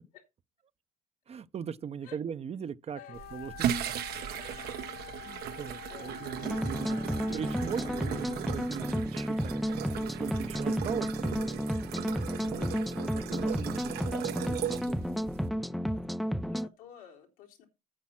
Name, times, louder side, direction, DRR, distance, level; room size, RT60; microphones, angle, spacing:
voice 1, 1.3-3.9 5.2-6.9 7.3-12.7 13.1-15.6, right 7 dB, 35° right, 0.7 m, -41 dB
Wind instrument woodwind instrument, 2.9-8.8, left 10 dB, 55° left, 0.6 m, -47 dB
voice 2, 3.0-3.3 5.5-6.6 6.8-8.2 10.4-10.5 12.5-13.1 14.2-14.6 15.7-16.0 16.3-17.7, left 9 dB, 90° left, 3.7 m, -53 dB
sound 1, 3.1-15.5, right 10 dB, 65° right, 0.9 m, -37 dB
sound 2, 6.4-16.7, equal, ahead, 0.4 m, -32 dB
8.9 x 7.3 x 5.9 m
supercardioid pair, 80°, 18 cm